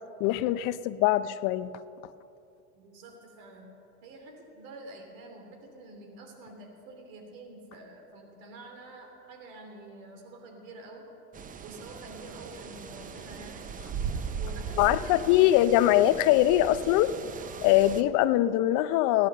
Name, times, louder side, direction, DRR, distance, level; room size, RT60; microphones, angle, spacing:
voice 1, 0.2-1.7 14.8-17.1 17.6-19.3, left 14 dB, 50° left, 15 dB, 0.6 m, -22 dB
voice 2, 2.7-3.7 4.0-11.1 11.6-13.8 14.3-15.6, right 2 dB, 65° right, 3 dB, 3.1 m, -47 dB
sound 1, 11.3-18.0, right 6 dB, 20° right, 0.7 m, -38 dB
16.5 x 10.5 x 6.7 m, 2.7 s
hypercardioid pair, 105°, 43 cm